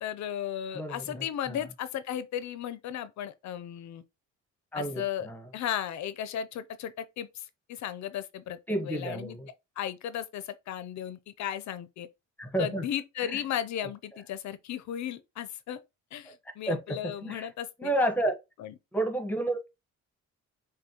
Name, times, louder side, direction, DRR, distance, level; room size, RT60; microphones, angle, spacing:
voice 1, 0.0-4.0 4.7-5.3 5.5-8.6 8.8-9.4 9.8-12.1 12.6-15.8 16.1-17.9 18.6-18.7, left 10 dB, 70° left, 0.5 m, -35 dB
voice 2, 0.7-1.6 4.7-5.5 8.7-9.5 12.4-12.8 13.2-13.4 16.3-16.4 16.7-17.5 17.8-18.4 18.9-19.7, right 1 dB, 5° left, 1.0 m, -31 dB
6.2 x 2.2 x 2.8 m
cardioid pair, 90°, 30 cm